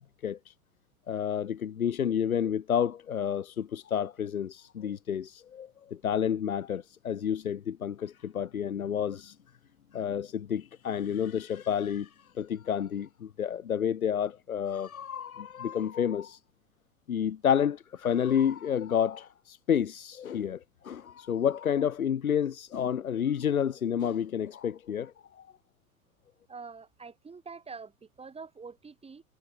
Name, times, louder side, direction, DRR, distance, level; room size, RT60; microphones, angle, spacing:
voice 1, 0.2-0.5 1.1-9.4 9.9-16.4 17.1-25.5, left 8 dB, 80° left, 0.9 m, -30 dB
voice 2, 26.5-29.2, right 5 dB, 15° right, 7.7 m, -45 dB
figure-of-eight pair, 95°, 42 cm